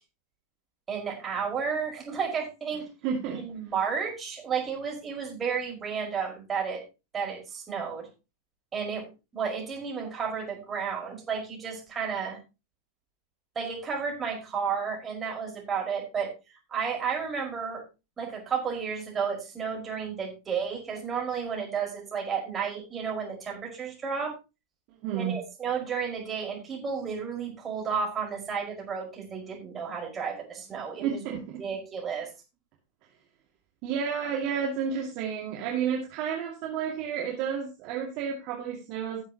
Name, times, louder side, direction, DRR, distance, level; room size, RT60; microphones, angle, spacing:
voice 1, 0.9-2.9 3.4-6.8 7.1-8.1 8.7-9.0 9.3-12.4 13.6-16.3 16.7-17.8 18.2-24.3 25.1-31.2 31.6-32.3, right 6 dB, 20° right, -1 dB, 5.3 m, -32 dB
voice 2, 3.0-3.4 25.0-25.4 31.0-31.6 33.8-39.2, right 7 dB, 45° right, -1 dB, 2.4 m, -31 dB
17.0 x 7.4 x 3.0 m, 0.28 s
figure-of-eight pair, 90°, 0 cm